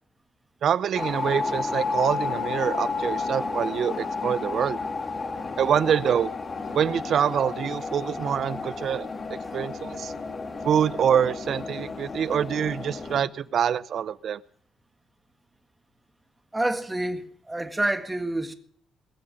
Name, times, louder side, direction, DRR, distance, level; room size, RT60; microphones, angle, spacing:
voice 1, 0.6-4.8 5.6-6.3 6.7-10.1 10.6-14.4, right 8 dB, 60° right, 0.7 m, -25 dB
sound 1, 1.0-13.2, left 4 dB, 35° left, 2.5 m, -32 dB
voice 2, 16.5-18.5, right 1 dB, 10° right, 1.8 m, -28 dB
21.5 x 7.5 x 7.8 m
cardioid pair, 90°, 0 cm